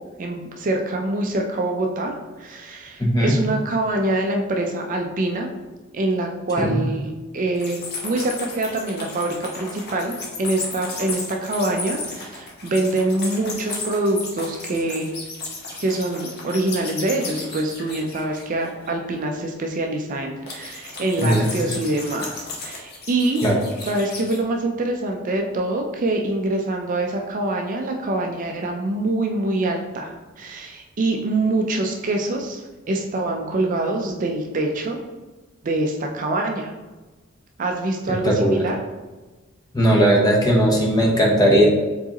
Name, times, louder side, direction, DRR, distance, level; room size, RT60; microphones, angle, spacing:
voice 1, 0.2-5.5 5.9-15.1 15.8-23.4 23.8-35.0 35.6-36.7 37.6-38.8, right 2 dB, 40° right, 2 dB, 0.4 m, -25 dB
voice 2, 3.0-3.4 6.6-6.8 21.2-21.5 23.4-23.6 38.2-38.6 39.7-41.7, equal, 20° left, -1 dB, 0.7 m, -17 dB
sound 1, 7.6-18.9 20.5-24.4, left 3 dB, 50° left, 1.0 m, -34 dB
4.6 x 4.0 x 2.9 m, 1.2 s
head